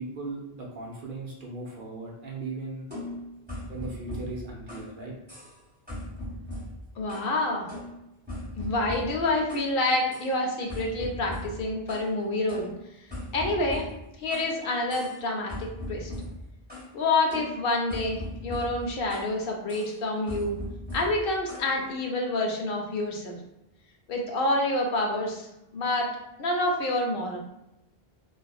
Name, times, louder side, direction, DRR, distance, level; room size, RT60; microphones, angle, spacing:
voice 1, 0.0-2.9 3.7-5.1, right 3 dB, 60° right, -3 dB, 0.7 m, -37 dB
sound 1, 2.9-5.0 5.3-5.6 5.9-7.4 7.7-9.7 10.1-10.3 10.7-12.1 12.5-14.5 14.9-15.2 15.5-16.9 17.3-19.4 19.7-20.0 20.3-21.7, left 1 dB, 10° right, 1.4 m, -39 dB
voice 2, 7.0-7.7 8.6-12.7 13.3-13.9 14.2-16.1 16.9-20.6 20.9-23.4 24.1-25.5 25.7-26.1 26.4-27.4, left 2 dB, 70° left, 1 dB, 0.8 m, -27 dB
2.6 x 2.4 x 2.3 m, 0.88 s
omnidirectional pair, 1.0 m